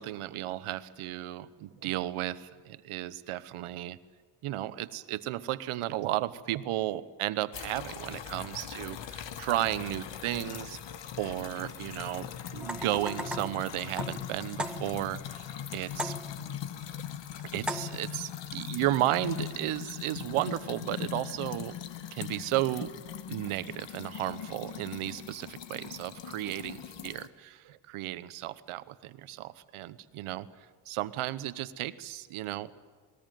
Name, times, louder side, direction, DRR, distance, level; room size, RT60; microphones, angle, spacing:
voice 1, 0.0-4.0 4.4-10.8 11.2-16.2 16.9-17.0 17.5-21.8 22.1-22.9 23.3-26.8 27.0-30.5 30.9-32.7, right 14 dB, 80° right, 14 dB, 1.1 m, -34 dB
sound 1, 7.5-27.3, left 10 dB, 60° left, 1.4 m, -41 dB
sound 2, 12.6-15.2 16.0-16.6 17.7-18.2, right 1 dB, ahead, 1.3 m, -38 dB
21.0 x 19.5 x 9.2 m, 1.5 s
cardioid pair, 100°, 50 cm